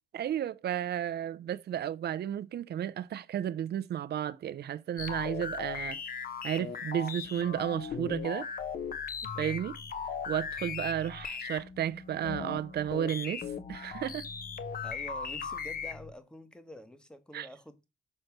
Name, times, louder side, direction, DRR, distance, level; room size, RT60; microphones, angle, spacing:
voice 1, 0.1-6.0 6.4-8.5 9.4-9.8 10.3-14.3 17.3-17.5, right 10 dB, 55° right, 0.6 m, -33 dB
sound 1, 5.0-16.1, left 6 dB, 45° left, 1.0 m, -38 dB
voice 2, 14.8-17.9, equal, 5° left, 1.1 m, -48 dB
6.7 x 3.1 x 5.8 m
cardioid pair, 90°, 20 cm